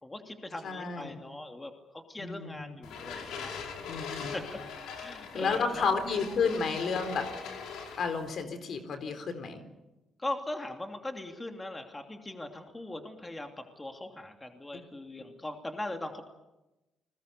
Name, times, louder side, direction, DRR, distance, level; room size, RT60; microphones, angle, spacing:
voice 1, 0.0-3.5 4.2-4.6 5.0-5.9 10.2-16.3, left 1 dB, 15° left, 4 dB, 2.9 m, -40 dB
voice 2, 0.6-1.2 2.2-2.8 3.9-4.4 5.3-7.3 7.9-9.6, left 5 dB, 60° left, 8 dB, 3.8 m, -31 dB
sound 1, 2.8-8.3, left 5 dB, 85° left, 4.8 m, -41 dB
29.5 x 21.5 x 6.9 m, 1.0 s
cardioid pair, 90°, 0 cm